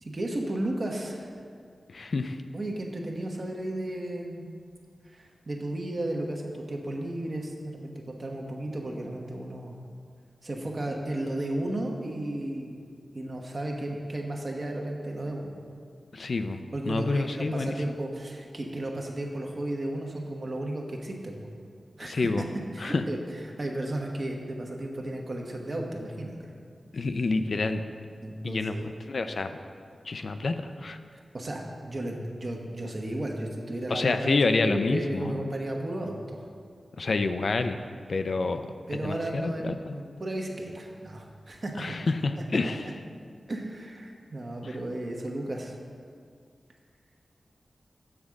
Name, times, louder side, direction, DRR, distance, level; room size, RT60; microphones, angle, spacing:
voice 1, 0.0-1.3 2.5-4.5 5.0-9.8 10.4-12.8 13.1-15.5 16.7-21.5 22.0-22.4 22.7-26.5 28.2-28.9 31.1-36.5 38.9-42.1 42.7-42.8 43.5-45.7, right 1 dB, 55° right, 0 dB, 1.0 m, -34 dB
voice 2, 1.9-2.4 16.1-16.6 16.9-17.7 22.0-22.4 22.8-23.0 26.9-27.8 28.4-29.5 30.1-31.0 33.9-35.4 37.0-37.8 38.1-38.6 39.0-40.0 41.8-42.8 44.6-44.7, left 3 dB, 70° left, 8 dB, 0.4 m, -28 dB
7.2 x 3.6 x 6.3 m, 2.1 s
cardioid pair, 45°, 0 cm